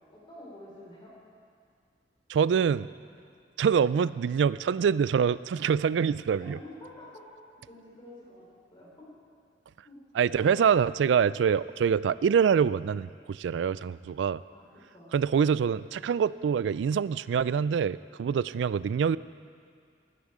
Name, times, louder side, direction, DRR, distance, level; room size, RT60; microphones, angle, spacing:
voice 1, 0.1-1.1 3.1-3.2 6.4-7.2 7.7-8.4 8.7-9.1 9.8-10.0 10.2-10.5 14.5-14.6 14.9-15.2, left 1 dB, 30° left, -5 dB, 3.7 m, -48 dB
voice 2, 2.3-2.9 3.6-6.6 10.2-14.4 15.1-19.2, right 7 dB, 85° right, 18 dB, 0.3 m, -25 dB
15.5 x 11.5 x 4.9 m, 2.2 s
head